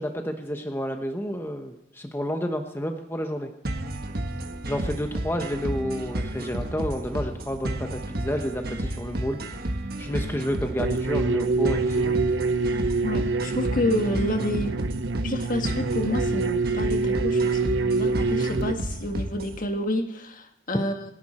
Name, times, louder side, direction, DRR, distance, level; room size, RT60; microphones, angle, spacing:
voice 1, 0.0-3.5 4.7-9.4 10.0-12.1, equal, 15° left, 4 dB, 1.0 m, -30 dB
sound 1, 3.6-19.6, right 1 dB, 55° right, 1.5 m, -32 dB
sound 2, 10.8-18.7, right 3 dB, 90° right, 0.7 m, -26 dB
voice 2, 13.0-14.8 15.2-21.1, left 1 dB, 50° left, 5 dB, 1.6 m, -29 dB
27.5 x 11.0 x 4.3 m, 0.79 s
head